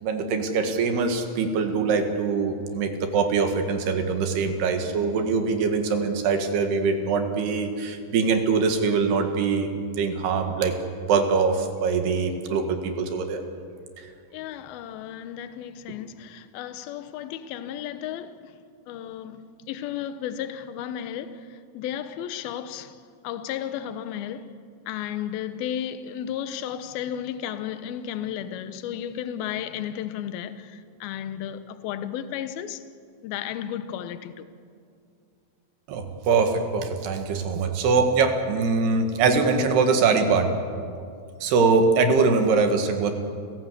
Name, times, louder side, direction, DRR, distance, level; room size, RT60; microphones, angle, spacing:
voice 1, 0.0-10.7 11.1-13.4 35.9-40.5 41.4-43.1, right 4 dB, 80° right, 3.8 m, -23 dB
voice 2, 14.3-18.5 18.9-24.6 24.9-32.8 33.2-34.5, left 10 dB, 75° left, 2.7 m, -34 dB
29.5 x 16.0 x 8.3 m
omnidirectional pair, 4.7 m